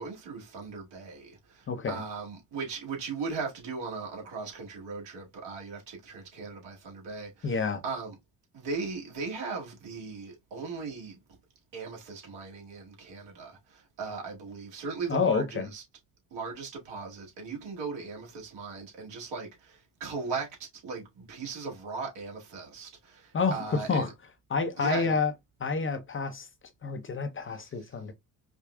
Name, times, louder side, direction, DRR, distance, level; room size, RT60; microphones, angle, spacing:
voice 1, 0.0-8.1 8.5-11.2 11.7-15.8 16.3-24.1 24.8-25.1, right 4 dB, 65° right, 2.0 m, -38 dB
voice 2, 1.7-2.0 7.4-7.8 15.1-15.7 23.3-24.1 24.5-25.3 25.6-26.5 26.8-28.1, left 5 dB, 25° left, 0.6 m, -28 dB
4.9 x 2.3 x 2.3 m
hypercardioid pair, 55°, 46 cm